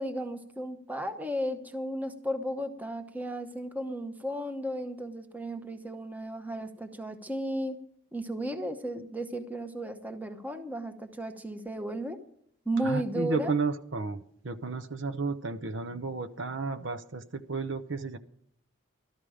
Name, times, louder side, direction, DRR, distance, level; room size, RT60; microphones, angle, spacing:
voice 1, 0.0-7.8 8.1-12.2 12.7-13.6, right 1 dB, 10° right, 7 dB, 0.9 m, -34 dB
voice 2, 12.8-18.2, right 4 dB, 65° right, 11 dB, 0.7 m, -32 dB
14.0 x 12.5 x 5.0 m, 0.70 s
head